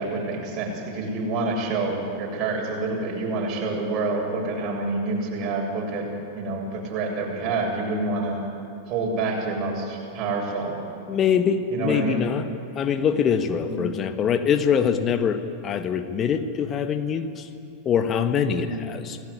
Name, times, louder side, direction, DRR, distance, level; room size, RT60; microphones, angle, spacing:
voice 1, 0.0-6.1 6.3-8.4 8.9-10.8 11.7-12.2 13.6-13.8 18.5-18.8, right 3 dB, 35° right, -1 dB, 7.7 m, -27 dB
voice 2, 11.1-12.5 12.7-17.5 17.8-19.2, left 7 dB, 25° left, 8 dB, 1.6 m, -24 dB
28.5 x 19.0 x 9.9 m, 2.5 s
figure-of-eight pair, 90°, 0 cm